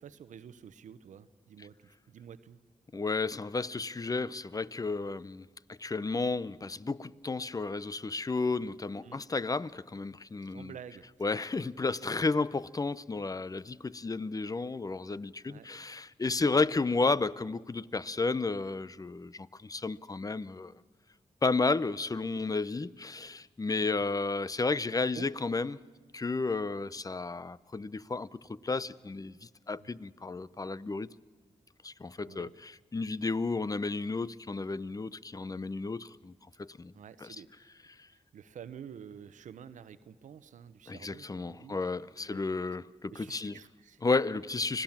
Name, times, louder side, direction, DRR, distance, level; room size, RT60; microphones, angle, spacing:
voice 1, 0.0-2.6 9.0-9.2 10.5-11.1 15.4-15.7 16.4-16.6 23.7-24.0 25.1-25.3 32.3-32.5 36.9-37.7 38.1-41.8 42.2-42.4 43.1-44.0, right 8 dB, 85° right, 0.8 m, -49 dB
voice 2, 2.9-10.8 11.2-20.7 21.4-25.8 26.1-31.1 31.8-36.3 36.6-36.9 37.2-37.4 40.9-43.6 44.0-44.8, left 3 dB, 30° left, 0.6 m, -32 dB
25.5 x 17.5 x 7.3 m
cardioid pair, 55°, 13 cm